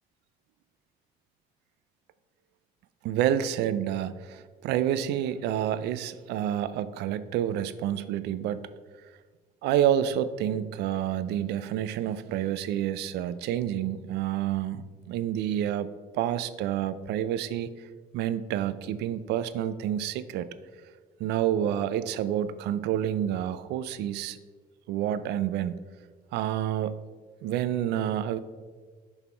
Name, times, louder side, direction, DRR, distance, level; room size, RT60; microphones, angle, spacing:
voice 1, 3.0-8.7 9.6-17.7 18.1-20.5 21.2-24.4 24.9-25.8 26.3-27.0 27.4-28.4, right 10 dB, 80° right, 14 dB, 0.5 m, -28 dB
6.2 x 5.6 x 4.4 m, 1.5 s
cardioid pair, 110°, 17 cm